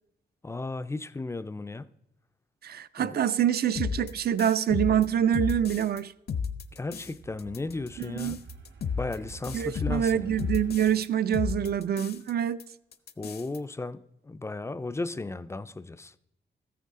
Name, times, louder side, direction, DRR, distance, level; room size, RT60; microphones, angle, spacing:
voice 1, 0.4-1.9 3.0-3.2 6.7-8.4 9.0-10.3 13.2-16.1, left 3 dB, 15° left, 0.4 m, -35 dB
voice 2, 2.6-6.1 8.0-8.4 9.5-12.6, right 9 dB, 60° right, 0.5 m, -26 dB
sound 1, 3.8-6.0 6.3-7.1 7.4-11.0 11.3-12.3 12.6-12.7 12.9-13.6, left 6 dB, 60° left, 0.7 m, -33 dB
sound 2, 6.6-10.9, right 3 dB, 85° right, 1.2 m, -48 dB
14.0 x 9.4 x 3.6 m
wide cardioid pair, 130°, 18 cm